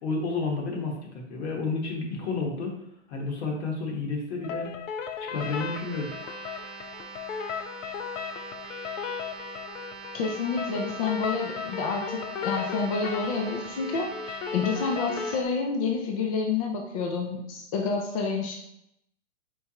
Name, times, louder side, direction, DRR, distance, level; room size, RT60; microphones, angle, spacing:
voice 1, 0.0-2.8 3.1-4.7 5.2-6.1, left 3 dB, 60° left, 0 dB, 1.2 m, -31 dB
sound 1, 4.4-15.4, left 6 dB, 75° left, 0.6 m, -36 dB
sound 2, 5.3-15.4, right 5 dB, 60° right, 0.9 m, -43 dB
voice 2, 10.1-18.6, left 4 dB, 30° left, 1 dB, 0.4 m, -29 dB
4.5 x 3.4 x 2.8 m, 0.82 s
hypercardioid pair, 145°, 38 cm